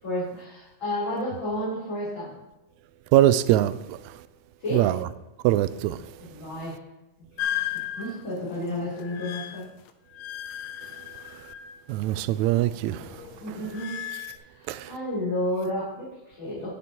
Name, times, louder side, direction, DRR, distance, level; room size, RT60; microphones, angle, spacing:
voice 1, 0.0-2.3 4.6-4.9 6.2-6.8 7.5-7.7 8.0-9.7 13.4-14.0 14.4-16.8, left 1 dB, 40° left, 4.5 m, -31 dB
voice 2, 3.1-4.0 4.7-5.0 5.4-6.0 11.9-13.0 14.7-14.9, right 13 dB, 80° right, 1.8 m, -22 dB
sound 1, 7.4-12.1 12.4-14.4, left 12 dB, 75° left, 1.9 m, -36 dB
19.5 x 6.8 x 3.0 m
omnidirectional pair, 3.4 m